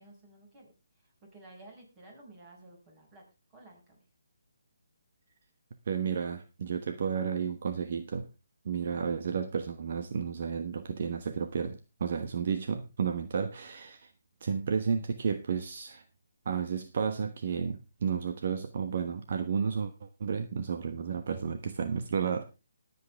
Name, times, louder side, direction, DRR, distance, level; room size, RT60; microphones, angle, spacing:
voice 1, 0.0-3.2 3.5-4.0, right 2 dB, 20° right, 1 dB, 5.8 m, -54 dB
voice 2, 5.9-8.3 8.6-14.1 14.4-16.0 16.4-19.9 20.2-22.4, right 6 dB, 50° right, 9 dB, 1.1 m, -32 dB
20.5 x 8.3 x 3.4 m, 0.28 s
hypercardioid pair, 155°, 0 cm